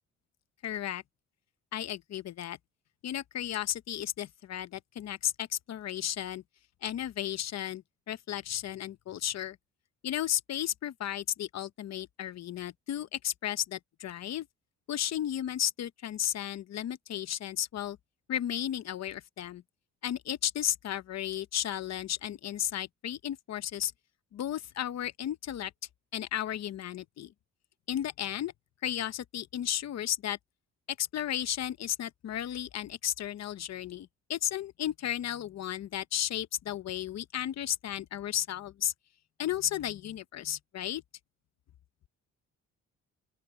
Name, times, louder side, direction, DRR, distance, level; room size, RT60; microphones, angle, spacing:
voice 1, 0.6-1.0 1.7-2.6 3.0-6.4 6.8-9.6 10.0-14.5 14.9-18.0 18.3-19.6 20.0-23.9 24.3-25.7 26.1-27.3 27.9-28.5 28.8-30.4 31.0-38.9 39.4-41.0, left 11 dB, 60° left, 1.0 m, -34 dB
open air
cardioid pair, 90°, 30 cm